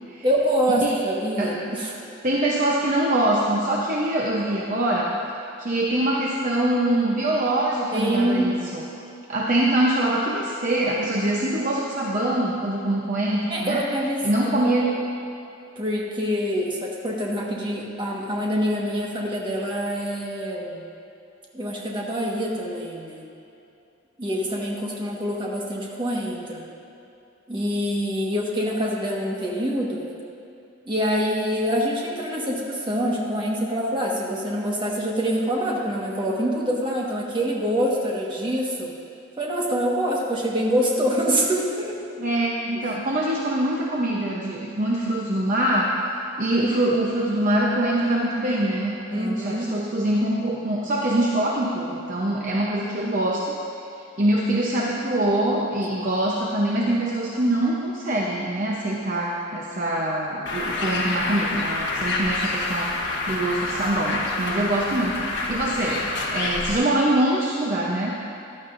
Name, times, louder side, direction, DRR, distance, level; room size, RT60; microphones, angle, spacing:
voice 1, 0.2-2.1 7.9-8.5 13.5-14.2 14.6-14.8 15.7-20.8 21.5-23.2 24.2-26.6 27.5-30.0 30.8-38.9 39.4-42.0 42.7-42.8 49.1-49.7, equal, 25° right, -3 dB, 1.5 m, -25 dB
voice 2, 2.2-5.1 5.6-8.9 9.3-13.8 14.2-14.9 42.2-45.9 46.4-53.6 54.2-68.2, right 1 dB, 45° right, -3 dB, 0.9 m, -24 dB
Bird, 60.5-66.8, left 2 dB, 65° left, 1.4 m, -27 dB
15.0 x 11.5 x 2.6 m, 2.7 s
head